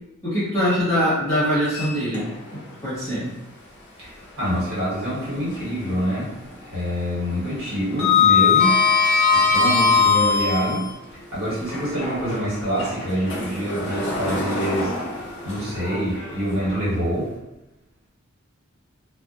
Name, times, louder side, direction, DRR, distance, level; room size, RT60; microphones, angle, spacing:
voice 1, 0.2-2.3 2.8-3.3, equal, 15° left, -12 dB, 1.3 m, -22 dB
Sliding door, 1.7-2.6 3.0-3.1 4.8-5.9 6.2-6.5 6.8-10.9 11.6-16.8, left 5 dB, 55° left, 0.6 m, -22 dB
voice 2, 4.0-8.8 9.0-17.3, equal, 65° right, -9 dB, 1.4 m, -26 dB
2.4 x 2.1 x 2.4 m, 0.95 s
head